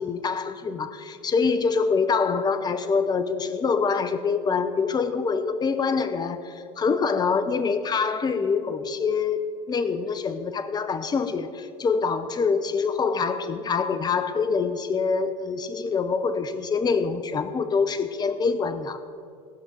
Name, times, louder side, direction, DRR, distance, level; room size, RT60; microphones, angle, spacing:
voice 1, 0.0-19.0, left 5 dB, 20° left, 11 dB, 0.7 m, -25 dB
18.0 x 6.0 x 5.1 m, 2.4 s
hypercardioid pair, 80°, 20 cm